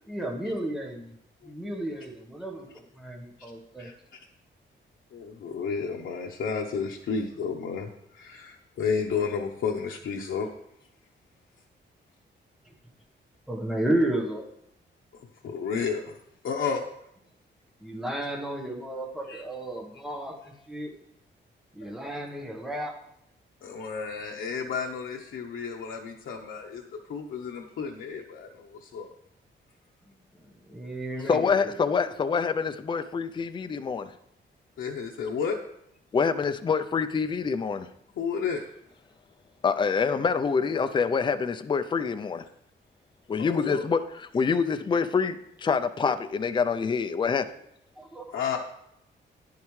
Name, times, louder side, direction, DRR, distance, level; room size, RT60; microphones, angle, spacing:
voice 1, 0.1-1.1 1.4-3.9 13.5-14.5 17.8-20.9 21.7-22.9 30.1-30.4 30.7-31.8 48.0-48.3, right 1 dB, ahead, 0 dB, 1.2 m, -33 dB
voice 2, 5.1-7.9 8.1-10.5 15.4-16.2 16.4-16.8 19.3-19.4 23.6-26.8 27.1-29.1 34.8-35.6 38.2-38.6 43.4-43.8 48.3-48.6, left 6 dB, 85° left, 0 dB, 0.9 m, -31 dB
voice 3, 31.3-34.1 36.1-37.9 39.6-42.4 43.3-45.4 45.6-47.4, left 5 dB, 25° left, 10 dB, 0.4 m, -26 dB
10.5 x 10.5 x 3.2 m, 0.76 s
wide cardioid pair, 175°, 20 cm